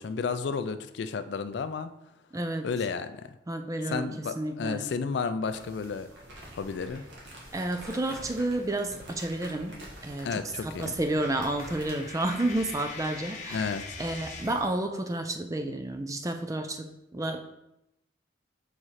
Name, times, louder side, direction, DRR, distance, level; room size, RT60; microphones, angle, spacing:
voice 1, 0.0-1.9 2.6-3.3 3.9-6.1 6.5-7.0 10.2-11.0 13.5-14.0, left 5 dB, 65° left, 11 dB, 0.3 m, -32 dB
voice 2, 2.3-2.7 3.5-4.8 7.5-10.3 10.6-13.7 14.0-17.6, right 1 dB, 15° right, 6 dB, 0.4 m, -31 dB
sound 1, 5.4-14.6, right 1 dB, 50° right, 1.3 m, -50 dB
Crumpling crinkling, 6.1-12.7, equal, 75° right, 1.6 m, -48 dB
Coin (dropping), 11.2-14.7, left 5 dB, 40° left, 0.8 m, -43 dB
5.0 x 4.7 x 4.1 m, 0.87 s
head